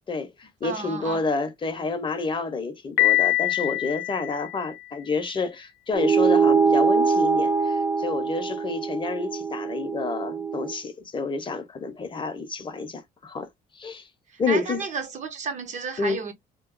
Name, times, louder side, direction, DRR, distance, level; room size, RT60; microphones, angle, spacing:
voice 1, 0.1-13.5 13.7-14.1 14.4-14.8 16.0-16.2, left 4 dB, 30° left, 0.7 m, -29 dB
voice 2, 0.6-1.2 14.5-16.3, right 5 dB, 45° right, 0.9 m, -32 dB
Piano, 3.0-4.9, left 18 dB, 80° left, 0.5 m, -24 dB
sound 1, 5.9-10.7, right 5 dB, 15° right, 0.4 m, -23 dB
2.9 x 2.2 x 2.5 m
cardioid pair, 110°, 17 cm